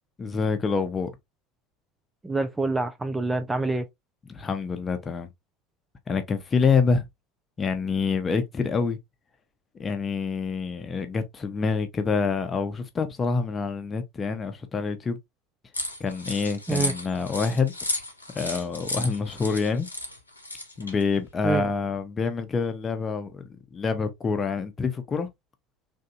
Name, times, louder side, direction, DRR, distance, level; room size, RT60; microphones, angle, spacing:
voice 1, 0.2-1.1 4.3-5.3 6.1-7.0 7.6-9.0 9.8-15.2 16.0-17.7 18.3-19.9 20.8-25.3, left 5 dB, 25° left, 0.8 m, -26 dB
voice 2, 2.2-3.8 16.7-16.9 21.4-21.6, right 3 dB, 10° right, 0.5 m, -26 dB
sound 1, 15.7-21.0, left 1 dB, 85° left, 0.5 m, -33 dB
3.5 x 2.6 x 2.5 m
figure-of-eight pair, 70°, 0 cm